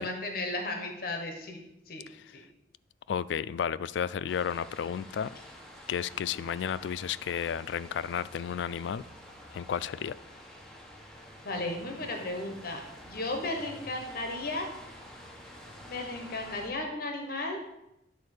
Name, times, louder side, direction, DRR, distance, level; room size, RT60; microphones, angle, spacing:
voice 1, 0.0-1.6 1.9-2.0 2.3-2.4 11.4-14.7 15.8-17.6, left 2 dB, 55° left, 1.1 m, -35 dB
voice 2, 3.1-5.3 5.9-9.0 9.5-10.1, left 8 dB, 75° left, 0.3 m, -32 dB
sound 1, 4.3-16.7, equal, 5° left, 1.2 m, -49 dB
9.6 x 4.3 x 6.5 m
head